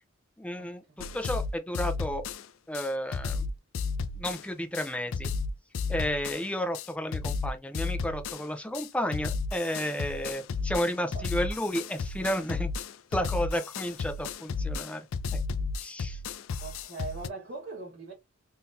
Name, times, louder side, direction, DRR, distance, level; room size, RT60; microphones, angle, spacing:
voice 1, 0.4-0.8 1.1-2.2 2.7-3.5 4.2-5.3 5.9-12.7 13.1-15.1 15.3-15.4 15.8-16.2, equal, 5° left, 0.5 m, -32 dB
sound 1, 1.0-2.4 2.7-2.9 3.1-4.4 4.7-4.9 5.1-6.4 6.7-6.9 7.1-8.4 8.7-8.9 9.1-17.3, left 4 dB, 65° left, 0.4 m, -33 dB
voice 2, 16.6-18.1, right 3 dB, 50° right, 1.3 m, -40 dB
3.8 x 2.8 x 2.5 m
head